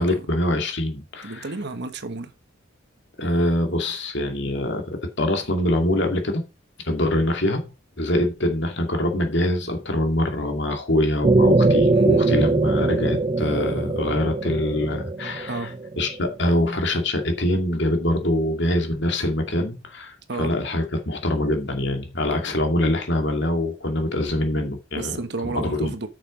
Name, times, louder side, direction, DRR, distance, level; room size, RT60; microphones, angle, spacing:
voice 1, 0.0-1.5 3.2-6.4 6.8-7.7 8.0-15.7 16.0-25.9, left 1 dB, 60° left, 2.4 m, -24 dB
voice 2, 1.2-2.3 11.9-12.3 15.5-15.8 20.3-20.6 25.0-26.1, right 3 dB, 55° right, 1.2 m, -32 dB
sound 1, 11.2-16.3, right 2 dB, 30° right, 0.5 m, -21 dB
9.2 x 6.7 x 5.1 m
head